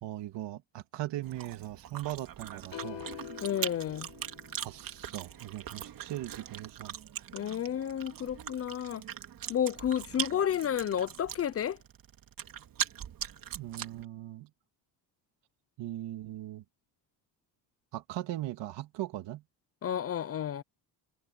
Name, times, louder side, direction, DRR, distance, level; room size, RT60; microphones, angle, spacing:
voice 1, 0.0-3.0 4.6-6.9 13.5-14.5 15.8-16.6 17.9-19.4, right 15 dB, 80° right, 2.9 m, -39 dB
Chewing mastication, 1.2-14.0, right 10 dB, 55° right, 2.7 m, -41 dB
sound 1, 2.7-5.0, left 13 dB, 85° left, 5.5 m, -45 dB
voice 2, 3.4-4.1 7.3-9.0 9.5-11.8 19.8-20.6, left 9 dB, 35° left, 0.5 m, -31 dB
cardioid pair, 145°, 42 cm